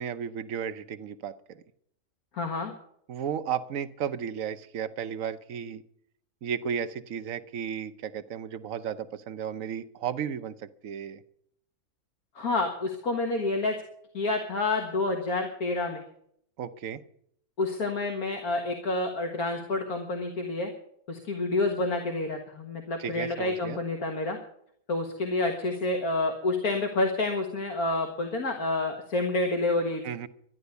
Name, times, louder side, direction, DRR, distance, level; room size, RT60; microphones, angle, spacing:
voice 1, 0.0-1.6 3.1-5.8 6.4-11.2 16.6-17.0 23.0-23.8 30.0-30.3, right 8 dB, 65° right, 10 dB, 1.1 m, -34 dB
voice 2, 2.3-2.7 12.4-13.8 14.1-16.0 17.6-20.7 21.1-24.4 24.9-30.0, left 2 dB, 80° left, 3 dB, 2.0 m, -28 dB
12.5 x 11.0 x 8.1 m, 0.69 s
omnidirectional pair, 1.5 m